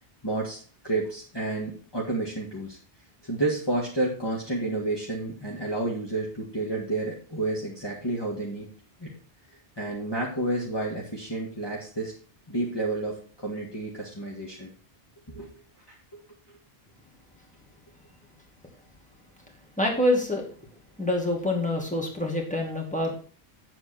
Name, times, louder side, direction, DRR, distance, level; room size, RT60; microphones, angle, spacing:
voice 1, 0.2-2.8 3.2-8.7 9.0-9.1 9.8-12.1 12.5-14.7 15.3-15.5 15.9-16.2, right 2 dB, 25° left, -4 dB, 1.9 m, -30 dB
voice 2, 19.8-20.4 21.0-23.1, left 1 dB, 5° left, 0 dB, 2.4 m, -26 dB
8.5 x 7.8 x 4.4 m, 0.39 s
omnidirectional pair, 1.0 m